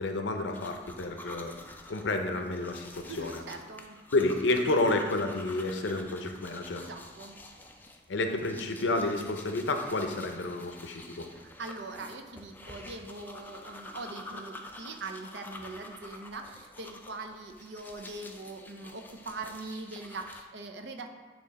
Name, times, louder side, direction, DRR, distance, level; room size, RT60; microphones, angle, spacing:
voice 1, 0.0-1.5 1.9-3.4 4.1-6.8 8.1-11.3, left 2 dB, 85° left, 5 dB, 0.6 m, -30 dB
sound 1, 0.5-20.4, left 2 dB, 10° left, 0.4 m, -48 dB
voice 2, 3.1-4.0 6.8-7.4 11.3-21.1, right 3 dB, 70° right, 5 dB, 0.6 m, -42 dB
8.7 x 3.0 x 4.1 m, 1.4 s
head